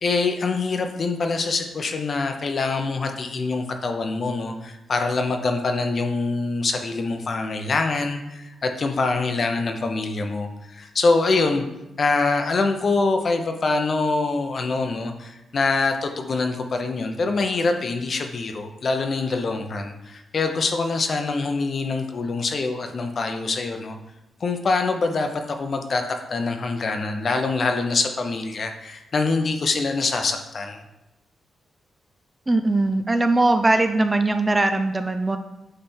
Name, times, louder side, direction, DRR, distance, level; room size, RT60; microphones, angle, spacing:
voice 1, 0.0-11.7 12.0-24.0 24.4-30.8, left 3 dB, 40° left, 5 dB, 0.7 m, -24 dB
voice 2, 32.5-35.4, right 2 dB, 15° right, 8 dB, 0.3 m, -20 dB
8.8 x 3.4 x 4.3 m, 0.92 s
wide cardioid pair, 140°, 0 cm